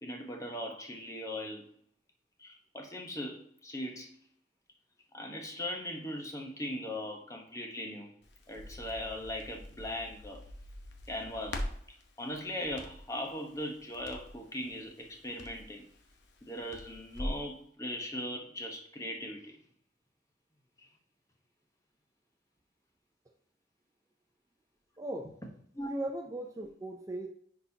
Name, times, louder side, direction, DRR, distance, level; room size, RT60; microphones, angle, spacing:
voice 1, 0.0-1.6 2.4-4.1 5.1-8.1 8.5-10.4 11.1-11.6 12.2-15.8 16.4-19.6 25.7-25.9, left 1 dB, 20° left, 2 dB, 1.0 m, -39 dB
Crackle, 8.2-17.5, left 1 dB, 90° left, 1.0 m, -44 dB
voice 2, 25.0-25.3 25.8-27.3, right 1 dB, 20° right, 3 dB, 0.5 m, -38 dB
9.9 x 4.1 x 2.8 m, 0.64 s
head